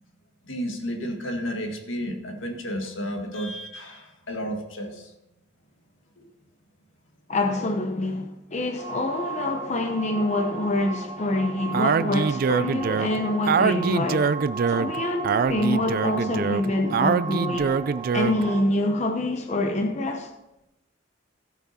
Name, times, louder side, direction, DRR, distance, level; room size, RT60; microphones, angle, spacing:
voice 1, 0.4-5.1 6.2-6.3 15.3-15.4 18.4-18.5, equal, 80° left, 1.8 m, -32 dB
voice 2, 7.3-14.3 14.7-17.7 18.1-20.3, left 2 dB, 35° left, 0.8 m, -26 dB
sound 1, 8.8-18.6, right 4 dB, 25° right, 0.8 m, -36 dB
Speech, 11.7-18.5, right 6 dB, 50° right, 0.3 m, -24 dB
16.0 x 5.9 x 4.2 m
head